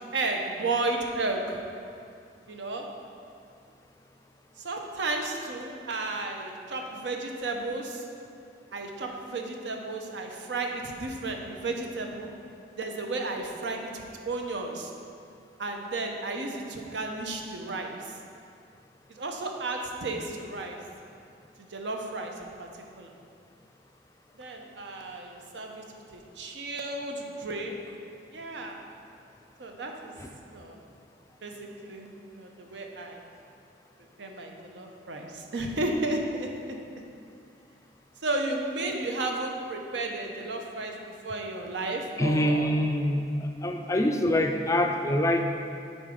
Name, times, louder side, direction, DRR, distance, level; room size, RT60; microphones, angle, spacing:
voice 1, 0.0-1.6 2.5-2.9 4.6-8.0 8.7-12.3 12.8-14.9 15.6-18.1 19.1-20.8 21.6-22.7 23.0-23.1 24.4-25.8 26.1-27.8 28.3-28.8 29.6-30.2 30.5-30.8 31.4-33.2 34.2-36.8 38.2-42.7, right 2 dB, 85° right, 2 dB, 0.7 m, -33 dB
voice 2, 42.2-43.3 43.6-45.5, left 1 dB, 15° left, 3 dB, 0.3 m, -25 dB
7.1 x 3.9 x 5.1 m, 2.4 s
head